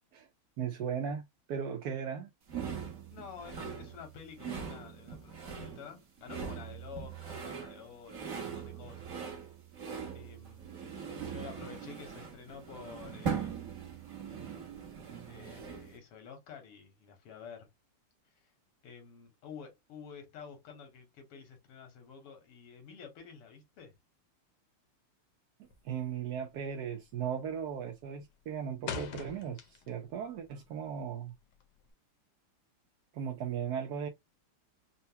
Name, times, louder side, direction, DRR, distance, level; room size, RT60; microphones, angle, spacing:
voice 1, 0.6-1.2 1.5-2.3 25.8-29.6 29.9-31.3 33.1-34.1, right 8 dB, 70° right, 0.9 m, -37 dB
sound 1, 2.5-16.0, right 7 dB, 45° right, 1.3 m, -41 dB
voice 2, 3.1-9.5 10.1-10.8 11.3-13.6 15.3-17.7 18.3-18.5 18.8-24.0, left 7 dB, 85° left, 2.1 m, -50 dB
sound 2, 25.6-26.0 26.3-26.7 27.0-27.5 27.8-30.1 30.4-31.9, left 7 dB, 65° left, 1.2 m, -43 dB
4.5 x 2.2 x 2.8 m
omnidirectional pair, 2.4 m